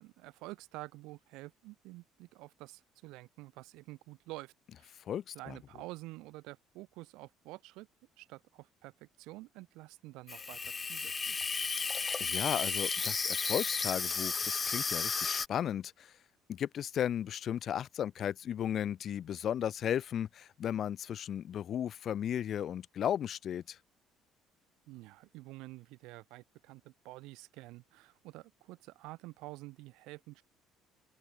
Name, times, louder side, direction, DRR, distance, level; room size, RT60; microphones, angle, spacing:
voice 1, 0.0-5.0 5.3-7.9 8.2-11.4 24.9-30.4, right 21 dB, 90° right, 2.8 m, -49 dB
voice 2, 5.1-5.5 12.2-16.1 16.5-23.8, left 9 dB, 40° left, 0.8 m, -35 dB
Water tap faucet / Sink (filling or washing), 10.3-15.5, left 5 dB, 20° left, 0.4 m, -33 dB
open air
cardioid pair, 175°, 0 cm